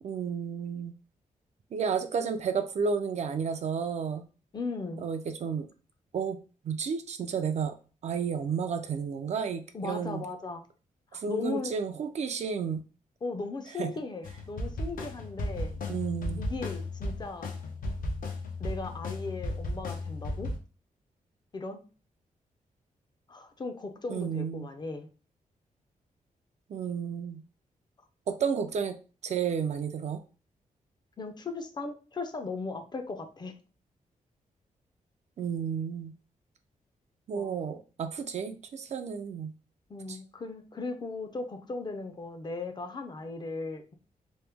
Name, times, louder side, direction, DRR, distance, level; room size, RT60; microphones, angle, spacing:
voice 1, 0.0-1.0 1.7-4.2 5.0-5.7 6.1-6.4 6.6-7.8 8.0-10.2 11.1-12.8 13.8-13.9 15.9-16.5 24.1-24.7 26.7-27.4 28.3-28.9 29.2-30.2 35.4-36.1 37.3-39.5, right 6 dB, 55° right, 7 dB, 0.4 m, -32 dB
voice 2, 4.5-5.1 9.7-10.6 11.1-11.7 13.2-15.7 16.4-17.5 18.6-20.5 21.5-21.8 23.3-25.1 31.2-33.5 37.3-37.6 39.9-43.9, left 3 dB, 30° left, 6 dB, 0.5 m, -37 dB
sound 1, 14.2-20.6, left 2 dB, 85° left, 0.6 m, -35 dB
3.0 x 2.0 x 3.4 m, 0.35 s
wide cardioid pair, 125°, 14 cm